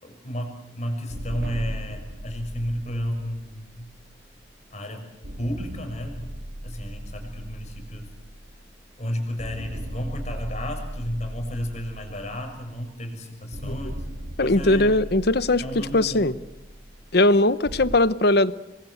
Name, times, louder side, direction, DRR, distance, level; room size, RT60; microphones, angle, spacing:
voice 1, 0.0-3.9 4.7-5.1 5.4-6.3 6.6-8.1 9.0-14.0 14.4-15.0 15.6-16.3, equal, 40° left, 4 dB, 6.6 m, -32 dB
sound 1, 1.1-4.7 5.2-9.0 9.4-13.0 13.5-18.0, equal, 60° right, 2.1 m, -37 dB
voice 2, 13.6-13.9 14.4-16.3 17.1-18.5, left 2 dB, 60° left, 15 dB, 1.0 m, -20 dB
28.5 x 23.0 x 8.1 m, 0.95 s
head